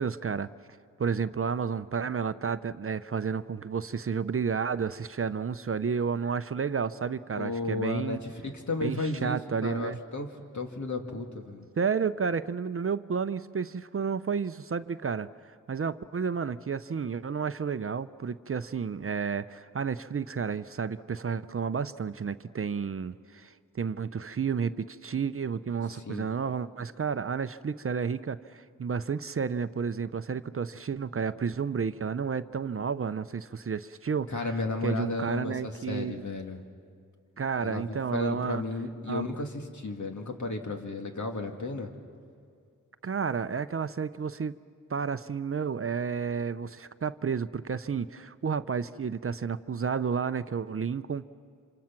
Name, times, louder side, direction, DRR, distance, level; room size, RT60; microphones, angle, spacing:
voice 1, 0.0-8.2 8.8-10.0 11.8-15.3 15.7-34.5 34.8-36.3 37.4-38.6 39.1-39.3 43.0-44.6 44.9-51.2, right 6 dB, 40° right, 13 dB, 0.6 m, -31 dB
voice 2, 7.3-10.3 10.5-11.7 25.9-26.3 34.3-36.6 37.6-41.9, left 3 dB, 60° left, 3 dB, 2.3 m, -33 dB
27.0 x 27.0 x 6.0 m, 2.2 s
cardioid pair, 60°, 33 cm